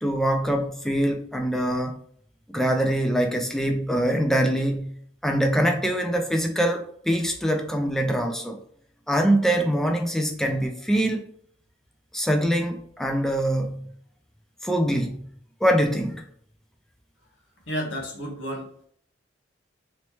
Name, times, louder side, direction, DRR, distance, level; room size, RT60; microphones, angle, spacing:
voice 1, 0.0-2.0 2.5-4.9 5.2-8.6 9.1-11.3 12.1-13.9 14.6-15.2 15.6-16.2, right 1 dB, ahead, 3 dB, 0.4 m, -24 dB
voice 2, 17.7-18.7, equal, 85° left, 1 dB, 1.0 m, -31 dB
3.1 x 3.0 x 3.0 m, 0.62 s
head